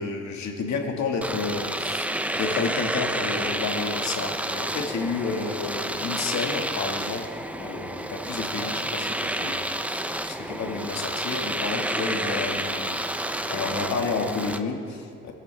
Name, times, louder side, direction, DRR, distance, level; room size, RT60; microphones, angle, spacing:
voice 1, 0.0-7.3 7.6-13.0 13.5-15.3, left 4 dB, 65° left, 2 dB, 2.1 m, -31 dB
Domestic sounds home sounds, 1.2-14.6, right 1 dB, 5° right, 0.7 m, -30 dB
23.0 x 14.0 x 3.6 m, 2.3 s
cardioid pair, 90°, 30 cm